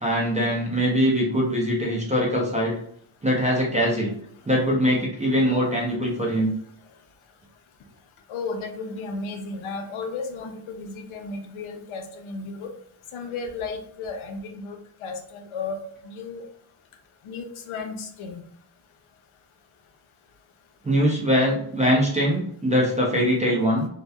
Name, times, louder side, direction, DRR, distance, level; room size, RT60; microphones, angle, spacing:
voice 1, 0.0-2.7 3.2-4.1 4.5-6.5 20.8-23.9, equal, 15° right, -3 dB, 0.3 m, -22 dB
voice 2, 8.3-12.7 13.1-15.8 16.0-16.4 17.2-18.4, left 4 dB, 75° left, 5 dB, 0.6 m, -34 dB
2.8 x 2.1 x 2.2 m, 0.66 s
wide cardioid pair, 170°, 49 cm